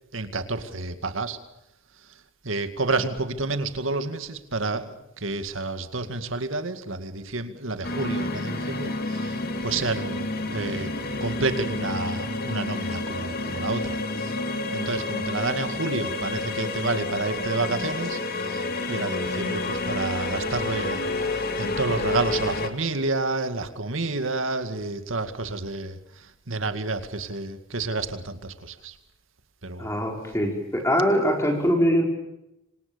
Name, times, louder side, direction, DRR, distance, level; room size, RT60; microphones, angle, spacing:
voice 1, 0.1-1.4 2.4-10.9 11.2-14.4 14.7-29.0 29.6-29.9, right 3 dB, 70° right, 9 dB, 2.2 m, -30 dB
sound 1, 7.8-22.7, left 2 dB, 50° left, 2.4 m, -29 dB
voice 2, 29.8-32.0, equal, 15° left, 2 dB, 5.2 m, -22 dB
27.0 x 26.0 x 7.1 m, 0.90 s
head